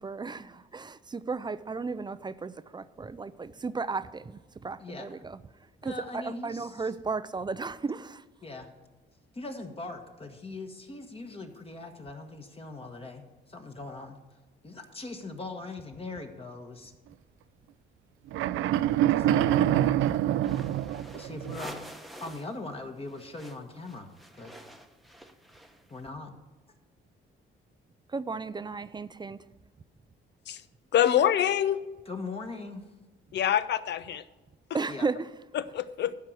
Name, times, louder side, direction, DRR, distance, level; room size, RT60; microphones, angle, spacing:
voice 1, 0.0-5.4 5.8-8.2 28.1-29.4 34.7-35.2, right 4 dB, 20° right, 0.4 m, -34 dB
voice 2, 5.8-6.9 8.4-8.7 9.3-13.2 13.5-14.2 14.6-16.9 19.1-20.0 21.1-21.8 22.2-24.1 24.4-24.5 25.9-26.3 32.1-32.8 34.9-35.1, left 3 dB, 30° left, 1.4 m, -40 dB
sound 1, 18.3-21.6, right 12 dB, 80° right, 0.4 m, -25 dB
sound 2, 20.4-22.6 22.8-26.0, equal, ahead, 0.9 m, -48 dB
voice 3, 30.9-31.8 33.3-34.2 35.5-36.1, left 10 dB, 60° left, 0.6 m, -25 dB
12.0 x 4.6 x 7.8 m
cardioid pair, 90°, 20 cm